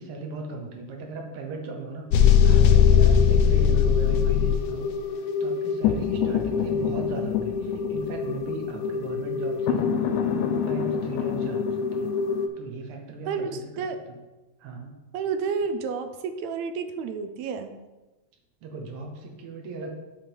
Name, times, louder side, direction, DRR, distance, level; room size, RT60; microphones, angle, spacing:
voice 1, 0.0-4.9 5.4-9.9 10.3-12.1 12.6-14.2 14.6-14.9 18.6-20.0, right 3 dB, 60° right, 2 dB, 1.7 m, -38 dB
sound 1, 2.1-12.5, left 8 dB, 80° left, 2.0 m, -22 dB
voice 2, 15.1-17.7, right 5 dB, 80° right, 8 dB, 1.8 m, -30 dB
10.0 x 3.8 x 4.6 m, 1.1 s
omnidirectional pair, 3.4 m